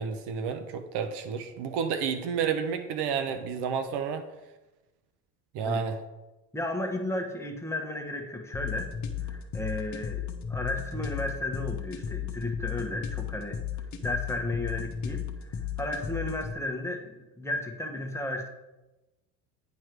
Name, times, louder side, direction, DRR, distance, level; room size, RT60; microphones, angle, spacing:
voice 1, 0.0-4.3 5.5-6.0, right 6 dB, 55° right, 8 dB, 0.9 m, -30 dB
voice 2, 6.5-8.9 9.2-18.5, left 1 dB, 5° left, 2 dB, 1.3 m, -34 dB
sound 1, 8.5-16.5, left 8 dB, 35° left, 1.2 m, -35 dB
9.4 x 4.6 x 4.6 m, 1.1 s
hypercardioid pair, 80°, 47 cm